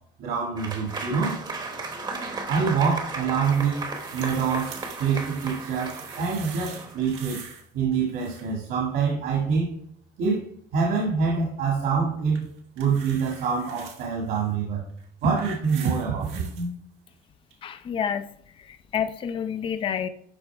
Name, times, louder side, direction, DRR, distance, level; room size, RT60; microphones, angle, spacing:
voice 1, 0.2-1.4 2.5-7.4 7.7-9.7 10.2-10.4 10.7-12.5 12.8-14.9 15.2-16.7, right 5 dB, 65° right, -1 dB, 1.8 m, -26 dB
Applause / Crowd, 0.6-7.4, right 3 dB, 25° right, 1.0 m, -35 dB
sound 1, 3.4-7.7 7.9-8.6 12.3-14.1 14.9-16.7 17.5-17.6, right 7 dB, 90° right, 1.5 m, -44 dB
voice 2, 17.6-20.1, left 8 dB, 30° left, 11 dB, 0.5 m, -29 dB
11.5 x 4.1 x 3.4 m, 0.65 s
cardioid pair, 170°, 17 cm